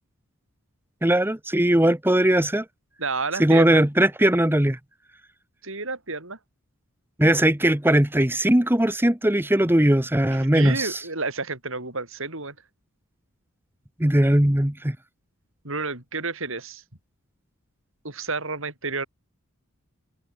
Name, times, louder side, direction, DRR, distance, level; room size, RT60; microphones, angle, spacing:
voice 1, 1.0-2.6 3.4-4.8 7.2-11.0 14.0-15.0, right 1 dB, 10° right, 1.3 m, -19 dB
voice 2, 3.0-3.8 5.6-6.4 10.5-12.6 15.6-16.8 18.0-19.1, right 3 dB, 65° right, 5.9 m, -30 dB
head